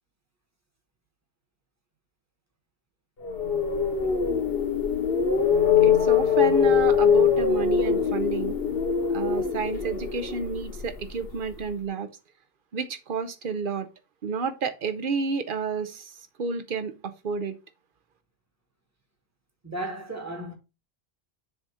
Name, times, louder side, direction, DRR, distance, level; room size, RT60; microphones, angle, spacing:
sound 1, 3.2-11.3, left 7 dB, 65° left, 1.1 m, -23 dB
voice 1, 5.8-8.6 9.1-12.1 12.7-13.9 14.2-17.6, right 5 dB, 55° right, 0.9 m, -30 dB
voice 2, 19.6-20.6, right 1 dB, 15° right, 1.3 m, -34 dB
7.1 x 2.7 x 4.8 m
omnidirectional pair, 1.1 m